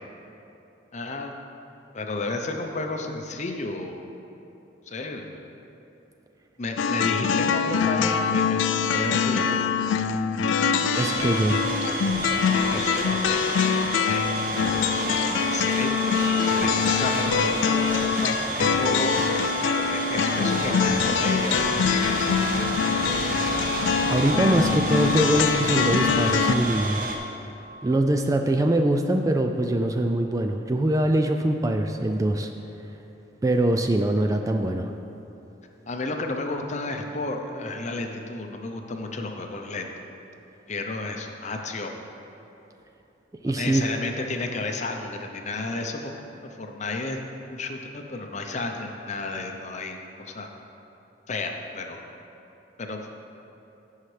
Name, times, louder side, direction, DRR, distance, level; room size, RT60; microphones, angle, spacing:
voice 1, 0.9-1.4 1.9-4.0 4.9-5.3 6.6-8.6 8.9-9.6 12.7-13.5 14.1-14.3 14.9-17.8 18.2-22.5 35.9-40.0 40.7-41.9 43.6-47.2 47.5-50.5 51.3-52.0 52.8-53.1, left 2 dB, 40° left, 3 dB, 0.7 m, -32 dB
sound 1, 6.8-26.6, left 6 dB, 80° left, 0.3 m, -24 dB
voice 2, 10.8-11.6 24.1-27.0 27.8-32.5 33.4-34.9 43.4-43.8, right 1 dB, 20° right, 4 dB, 0.3 m, -23 dB
sound 2, 10.9-27.2, right 2 dB, 45° right, 1.0 m, -30 dB
15.5 x 5.6 x 3.3 m, 2.9 s
head